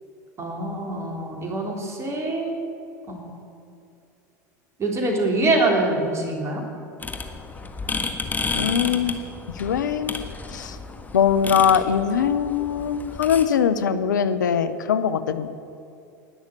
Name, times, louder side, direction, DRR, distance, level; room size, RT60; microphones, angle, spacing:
voice 1, 0.4-2.6 3.1-3.3 4.8-6.6, right 2 dB, 30° right, 1 dB, 3.8 m, -24 dB
sound 1, 7.0-13.4, left 4 dB, 15° left, 1.5 m, -32 dB
voice 2, 8.5-9.2 9.6-10.2 10.5-10.8 11.1-15.5, left 8 dB, 85° left, 12 dB, 0.8 m, -22 dB
19.0 x 6.6 x 8.2 m, 2.6 s
hypercardioid pair, 90°, 10 cm